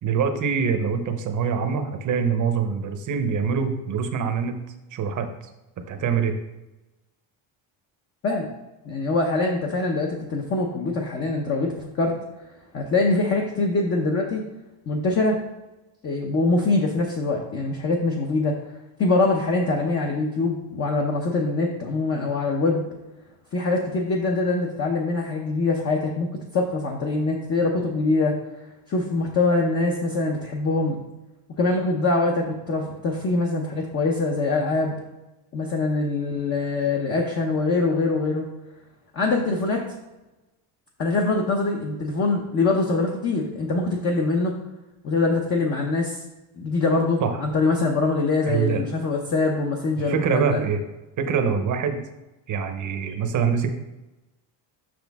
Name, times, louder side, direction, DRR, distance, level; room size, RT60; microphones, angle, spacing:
voice 1, 0.0-4.6 4.9-5.3 5.9-6.4 47.2-47.4 48.5-48.8 50.0-50.8 51.2-52.0 52.5-53.7, right 6 dB, 40° right, 7 dB, 0.8 m, -24 dB
voice 2, 8.8-12.2 12.7-14.4 14.9-15.4 16.0-18.5 19.0-22.9 23.5-26.3 26.5-28.4 28.9-31.0 31.6-34.9 35.5-38.5 39.1-39.8 41.0-44.6 45.0-46.2 46.6-50.6, left 3 dB, 30° left, 1 dB, 0.7 m, -23 dB
6.3 x 6.2 x 3.5 m, 1.0 s
cardioid pair, 160°, 49 cm